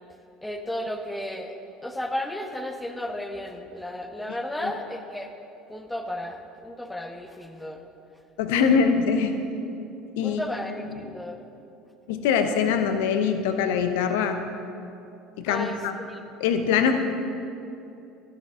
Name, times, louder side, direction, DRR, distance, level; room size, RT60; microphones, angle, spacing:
voice 1, 0.4-1.5 1.8-5.3 5.7-7.8 8.5-8.7 10.2-11.4 15.5-15.8 16.1-16.2, left 1 dB, 5° left, 5 dB, 1.1 m, -33 dB
voice 2, 8.4-9.3 10.2-10.4 12.1-14.4 15.4-15.9 16.4-16.9, left 6 dB, 70° left, 7 dB, 0.9 m, -23 dB
13.0 x 11.5 x 3.7 m, 2.7 s
figure-of-eight pair, 65°, 0 cm